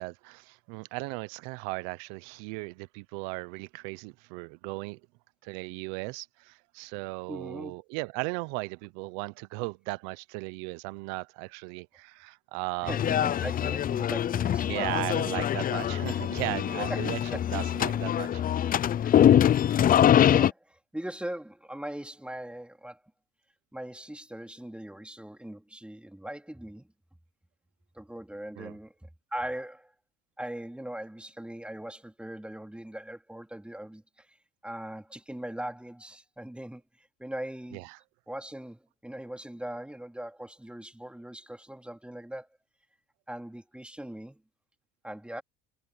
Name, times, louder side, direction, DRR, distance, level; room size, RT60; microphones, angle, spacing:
voice 1, 0.0-5.0 5.4-12.9 14.6-17.2 17.5-18.6 28.6-28.7 37.7-38.0, right 26 dB, 85° right, 0.8 m, -36 dB
voice 2, 7.3-7.8 12.8-15.0 16.9-17.4 17.9-18.0 19.0-19.2 20.3-23.0 23.7-26.9 27.9-29.9 30.4-37.9 38.3-42.5 43.3-44.4 45.0-45.4, right 1 dB, 5° right, 3.5 m, -40 dB
sound 1, 12.9-20.5, left 10 dB, 30° left, 0.4 m, -24 dB
supercardioid pair, 95°, 29 cm